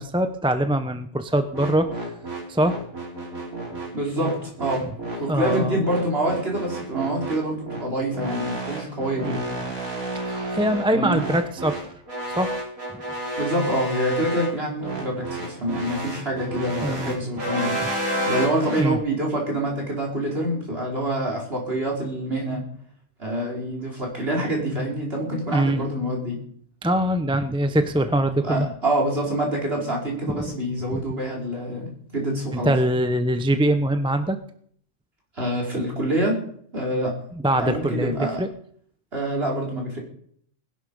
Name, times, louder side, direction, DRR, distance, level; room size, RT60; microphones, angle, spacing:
voice 1, 0.0-1.9 2.5-2.8 5.3-5.8 9.2-9.7 10.3-11.8 12.3-12.6 16.8-17.1 18.8-19.0 25.5-25.9 26.8-28.7 30.4-30.5 32.5-34.4 37.3-38.5, right 1 dB, 5° right, 9 dB, 0.7 m, -23 dB
sound 1, 1.5-18.9, right 1 dB, 85° right, 4.3 m, -31 dB
voice 2, 3.9-4.8 5.2-9.4 10.9-11.2 13.4-17.8 18.3-22.6 23.2-26.4 28.4-32.7 35.3-36.4 36.7-37.1 37.6-38.4 39.1-40.0, right 1 dB, 45° right, -1 dB, 4.9 m, -26 dB
19.5 x 11.5 x 5.4 m, 0.63 s
omnidirectional pair, 1.4 m